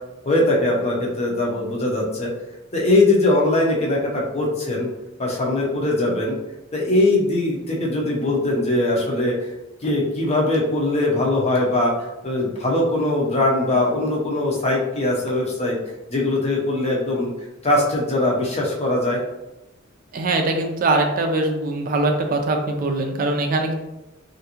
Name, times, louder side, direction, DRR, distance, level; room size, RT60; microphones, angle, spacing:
voice 1, 0.2-2.3 2.7-4.9 5.2-6.4 6.7-9.3 9.8-15.8 16.1-17.3 17.6-19.2, left 2 dB, 30° left, -3 dB, 0.7 m, -21 dB
voice 2, 20.1-23.7, right 2 dB, 45° right, 4 dB, 0.4 m, -22 dB
3.4 x 2.5 x 2.9 m, 1.0 s
head